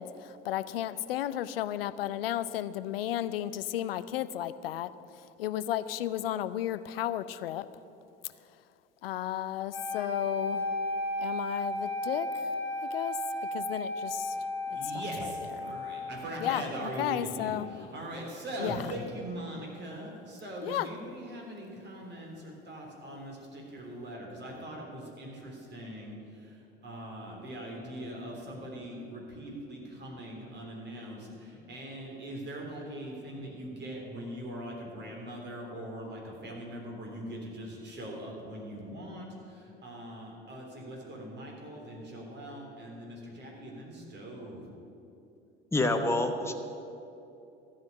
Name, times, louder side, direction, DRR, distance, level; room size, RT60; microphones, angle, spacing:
voice 1, 0.0-4.9 5.4-7.7 9.0-10.7 11.2-12.3 12.9-13.2 13.5-14.4 14.7-14.8 15.2-15.3 15.6-15.8 16.4-17.7 18.6-18.8 20.6-20.9, left 12 dB, 70° left, 15 dB, 0.5 m, -33 dB
sound 1, 9.7-17.8, left 1 dB, 90° right, 2.6 m, -35 dB
voice 2, 14.7-44.6, right 1 dB, 35° right, -1 dB, 3.4 m, -41 dB
voice 3, 45.7-46.5, left 2 dB, 10° left, 5 dB, 1.1 m, -27 dB
13.0 x 5.9 x 9.5 m, 2.7 s
figure-of-eight pair, 60°, 30 cm